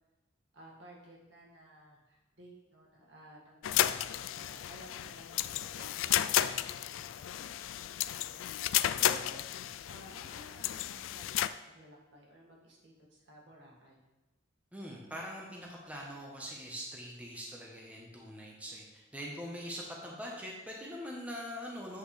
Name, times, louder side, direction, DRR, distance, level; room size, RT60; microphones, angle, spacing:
voice 1, 0.5-14.0, right 1 dB, 70° right, -3 dB, 2.0 m, -55 dB
sound 1, 3.6-11.5, left 12 dB, 85° left, 0.3 m, -33 dB
voice 2, 14.7-22.0, equal, 10° right, -3 dB, 1.0 m, -43 dB
8.3 x 6.0 x 3.3 m, 1.0 s
head